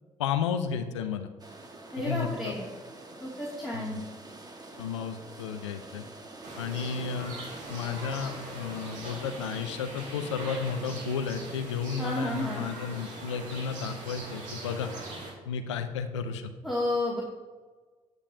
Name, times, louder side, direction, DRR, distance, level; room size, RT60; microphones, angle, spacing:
voice 1, 0.2-1.3 2.0-2.5 3.7-4.1 4.8-6.0 6.6-7.3 7.7-14.9 15.5-16.5, left 6 dB, 90° left, 10 dB, 0.5 m, -33 dB
sound 1, 1.4-9.6, right 2 dB, 25° right, 1.5 m, -47 dB
voice 2, 1.9-2.6 3.2-4.0 12.0-12.7 16.6-17.2, left 1 dB, ahead, -8 dB, 2.3 m, -31 dB
sound 2, 6.4-15.3, right 2 dB, 65° right, 2.2 m, -41 dB
9.7 x 9.0 x 2.7 m, 1.4 s
hypercardioid pair, 45°, 15 cm